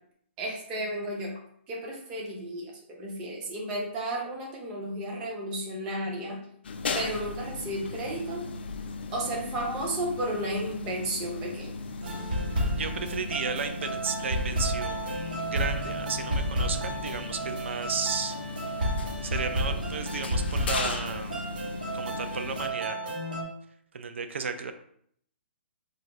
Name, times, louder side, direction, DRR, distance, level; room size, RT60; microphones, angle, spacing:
voice 1, 0.4-1.4 1.7-2.7 3.0-6.4 6.9-8.4 9.1-11.7, right 1 dB, 15° right, -2 dB, 0.5 m, -33 dB
sound 1, 6.6-22.7, left 4 dB, 60° left, 0.4 m, -37 dB
sound 2, 12.0-23.4, right 1 dB, 45° right, 0.9 m, -32 dB
voice 2, 12.7-18.8 19.2-21.4 21.9-23.2 23.9-24.7, right 5 dB, 75° right, 8 dB, 0.4 m, -34 dB
2.5 x 2.3 x 4.0 m, 0.65 s
hypercardioid pair, 175°, 6 cm